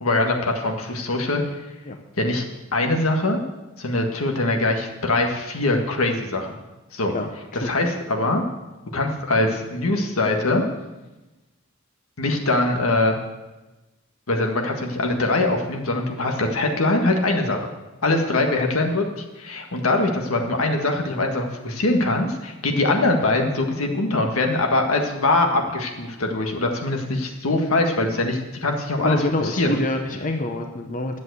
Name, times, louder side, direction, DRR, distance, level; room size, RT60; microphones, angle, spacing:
voice 1, 0.0-1.4 2.2-2.5 2.7-3.4 3.8-6.6 6.9-7.1 7.5-8.4 8.9-10.6 12.2-13.2 14.3-17.7 18.0-29.7, left 2 dB, 85° left, 2 dB, 1.7 m, -22 dB
voice 2, 7.1-7.7 29.0-31.2, left 2 dB, 40° left, 5 dB, 0.8 m, -26 dB
11.0 x 7.4 x 8.0 m, 1.1 s
head